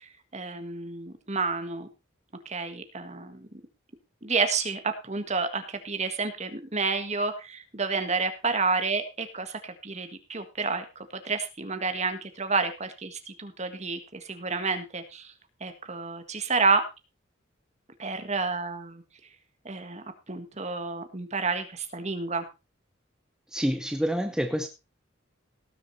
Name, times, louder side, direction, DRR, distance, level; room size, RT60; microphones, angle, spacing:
voice 1, 0.0-1.9 2.4-3.5 4.2-15.3 15.6-16.8 18.0-19.0 19.6-22.4, right 4 dB, 35° right, 9 dB, 1.7 m, -30 dB
voice 2, 23.5-24.7, equal, 5° right, 6 dB, 0.9 m, -27 dB
18.0 x 6.7 x 4.2 m, 0.28 s
head